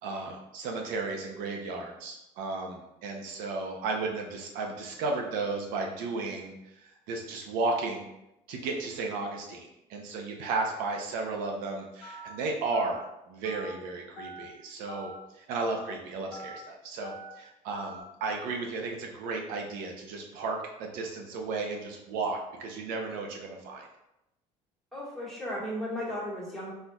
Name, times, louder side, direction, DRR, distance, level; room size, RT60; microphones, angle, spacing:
voice 1, 0.0-8.1 8.5-23.9, right 3 dB, 75° right, 2 dB, 0.7 m, -34 dB
Telephone, 12.0-12.3 12.7-13.0 13.4-13.7 14.2-14.4 14.9-15.2 15.6-15.9 16.3-16.6 17.0-17.3 17.7-18.0, equal, 55° left, 1.2 m, -44 dB
voice 2, 24.9-26.7, equal, ahead, -9 dB, 1.7 m, -35 dB
5.0 x 4.3 x 2.3 m, 0.88 s
cardioid pair, 165°, 14 cm